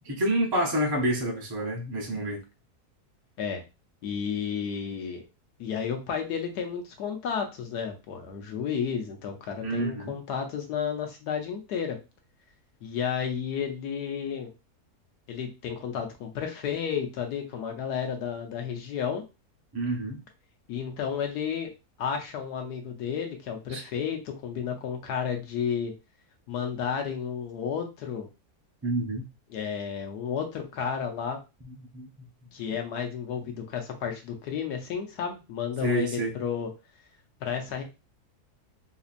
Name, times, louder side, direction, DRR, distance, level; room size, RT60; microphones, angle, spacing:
voice 1, 0.0-2.4 9.6-10.2 19.7-20.2 23.7-23.8 28.8-29.2 31.6-32.3 35.8-36.3, right 1 dB, 25° right, 0 dB, 0.5 m, -28 dB
voice 2, 4.0-5.2 5.6-12.0 12.8-14.5 15.3-19.2 20.7-21.7 22.0-25.9 26.5-28.3 29.5-31.4 32.5-36.7 37.4-37.8, left 7 dB, 85° left, 3 dB, 1.4 m, -32 dB
4.1 x 2.8 x 2.5 m, 0.27 s
omnidirectional pair, 1.7 m